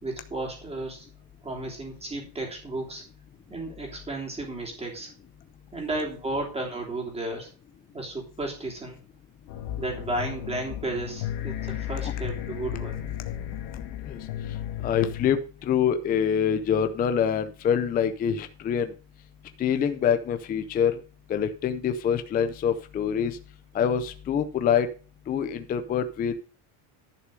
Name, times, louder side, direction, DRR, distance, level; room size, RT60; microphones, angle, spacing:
voice 1, 0.0-1.1 1.4-3.0 3.5-5.1 5.7-7.5 7.9-9.0 9.8-13.0, right 2 dB, 10° right, 0 dB, 3.2 m, -33 dB
sound 1, 9.5-15.3, left 11 dB, 65° left, 1.8 m, -34 dB
voice 2, 14.8-18.9 19.6-20.9 21.3-23.4 23.7-24.9 25.3-26.3, left 8 dB, 20° left, 9 dB, 0.5 m, -25 dB
11.5 x 6.6 x 5.3 m, 0.37 s
cardioid pair, 175°, 48 cm